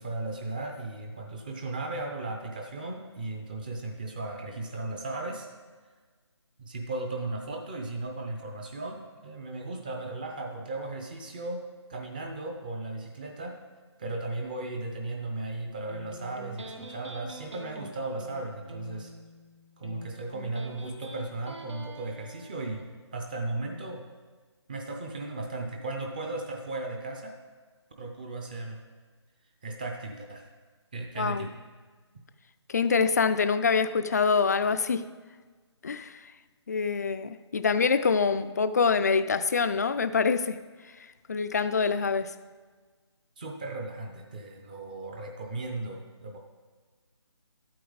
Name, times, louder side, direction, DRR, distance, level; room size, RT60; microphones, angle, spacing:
voice 1, 0.0-5.5 6.6-11.6 11.9-13.6 14.0-19.1 19.8-24.0 24.7-27.3 28.0-28.8 29.6-30.5 30.9-31.5 43.4-46.4, right 2 dB, 20° right, 0.6 m, -36 dB
Electric guitar, 15.9-22.9, right 1 dB, 80° right, 1.8 m, -45 dB
voice 2, 31.2-31.5 32.7-35.1 35.8-36.2 36.7-40.6 41.3-42.4, left 5 dB, 35° left, 0.4 m, -25 dB
12.5 x 8.6 x 3.9 m
figure-of-eight pair, 165°, 15 cm